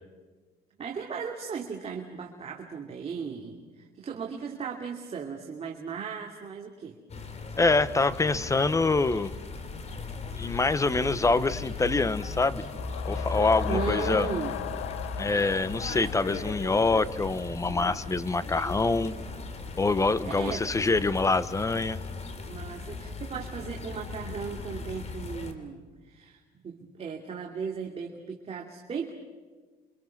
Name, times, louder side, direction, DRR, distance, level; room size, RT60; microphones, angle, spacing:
voice 1, 0.8-7.0 13.6-14.6 20.2-20.9 22.5-29.1, right 6 dB, 40° right, 0 dB, 2.8 m, -36 dB
sound 1, 7.1-25.5, left 3 dB, 40° left, 3.2 m, -37 dB
voice 2, 7.6-9.3 10.4-12.6 13.0-14.3 15.2-19.1 19.8-22.0, left 3 dB, 20° left, 15 dB, 1.0 m, -25 dB
sound 2, 12.2-17.1, left 13 dB, 85° left, 1.0 m, -37 dB
29.0 x 25.5 x 6.0 m, 1.4 s
cardioid pair, 110°, 17 cm